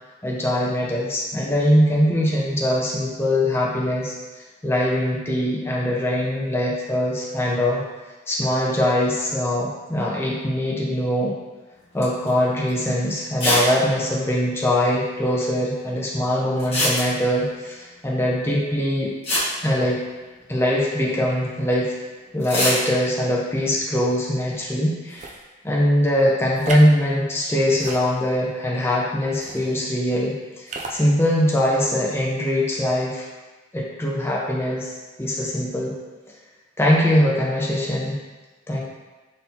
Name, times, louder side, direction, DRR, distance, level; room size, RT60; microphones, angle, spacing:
voice 1, 0.2-4.1 4.6-7.8 8.3-11.3 11.9-19.1 19.6-20.0 20.5-21.9 22.3-25.3 25.6-33.3 33.7-34.9 35.2-35.9 36.8-38.2 38.7-38.8, left 1 dB, 15° left, -4 dB, 0.6 m, -22 dB
sound 1, 12.0-12.3 12.7-12.8 13.4-13.7 14.0-14.1 14.3-14.4 16.6-17.4 18.8-18.9 19.2-20.5 22.4-22.9, left 1 dB, 30° left, 1.4 m, -23 dB
sound 2, 25.1-25.4 26.6-26.9 27.7-28.5 29.3-29.6 30.7-31.0, right 3 dB, 40° right, 0.4 m, -33 dB
4.0 x 3.8 x 2.8 m, 1.2 s
head